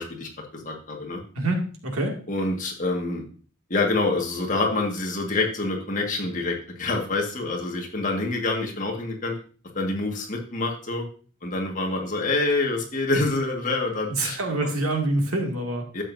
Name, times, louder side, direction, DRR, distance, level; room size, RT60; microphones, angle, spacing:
voice 1, 0.0-1.2 2.3-3.2 3.7-9.4 9.7-11.1 11.4-14.4 15.9-16.0, left 2 dB, 35° left, 1 dB, 1.8 m, -26 dB
voice 2, 1.3-2.2 14.1-16.0, right 2 dB, 85° right, 1 dB, 2.4 m, -26 dB
12.0 x 8.1 x 2.7 m, 0.41 s
head